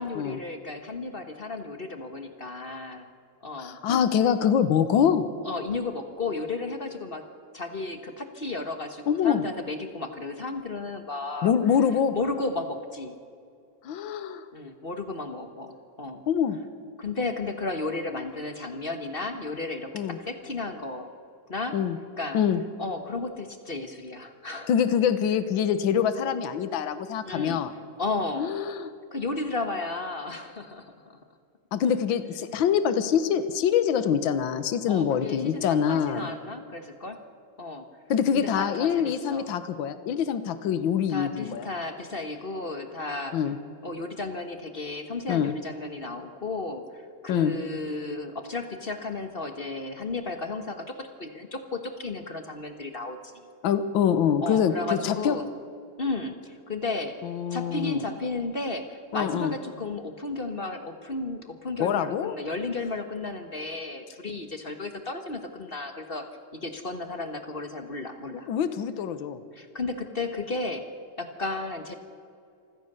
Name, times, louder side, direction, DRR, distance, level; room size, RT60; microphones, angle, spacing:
voice 1, 0.0-3.1 3.4-3.8 5.4-7.3 7.5-11.5 12.1-13.1 14.5-16.2 17.0-21.1 21.5-21.8 22.2-22.4 22.8-24.7 27.2-27.6 28.0-28.5 29.1-31.2 31.8-31.9 34.9-37.2 37.6-37.9 38.3-39.5 41.1-43.4 43.8-53.3 54.4-55.5 56.0-57.2 57.5-66.3 66.5-68.5 69.5-70.9 71.2-72.0, left 3 dB, 35° left, 7 dB, 1.1 m, -33 dB
voice 2, 3.6-5.2 9.1-9.4 11.4-12.1 13.8-14.4 16.3-16.6 19.9-20.2 21.7-22.0 22.3-22.6 24.7-27.7 28.4-28.9 31.7-36.3 38.1-41.6 43.3-43.5 45.3-45.5 47.3-47.6 53.6-55.4 57.2-58.0 59.1-59.5 61.8-62.4 68.5-69.4, left 8 dB, 65° left, 12 dB, 1.8 m, -25 dB
26.5 x 15.5 x 6.7 m, 2.4 s
omnidirectional pair, 2.4 m